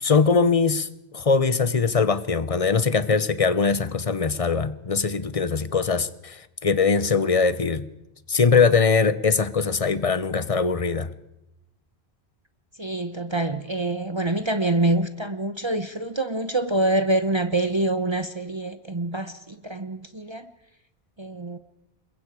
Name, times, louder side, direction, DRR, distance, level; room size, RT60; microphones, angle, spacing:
voice 1, 0.0-0.9 1.1-7.9 8.3-11.1, left 5 dB, 35° left, 0.9 m, -21 dB
voice 2, 12.8-20.5 21.2-21.6, right 2 dB, 30° right, 0.9 m, -26 dB
27.0 x 22.0 x 4.9 m
omnidirectional pair, 1.1 m